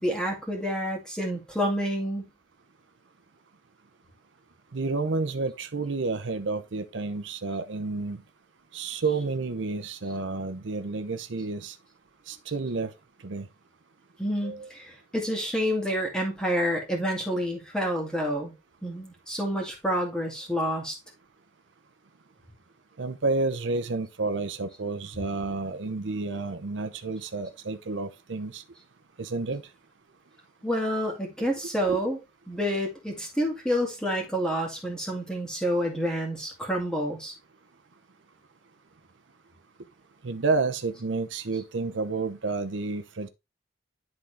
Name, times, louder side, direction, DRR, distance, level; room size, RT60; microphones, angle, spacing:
voice 1, 0.0-2.3 14.2-18.5 18.8-21.0 30.6-32.2 32.5-37.3, equal, 5° left, 2.1 m, -28 dB
voice 2, 4.7-8.2 8.7-11.8 12.3-12.9 13.2-13.5 14.4-14.7 23.0-28.6 29.2-29.6 31.9-32.0 40.2-43.3, right 3 dB, 75° right, 0.7 m, -30 dB
11.0 x 3.8 x 3.4 m
head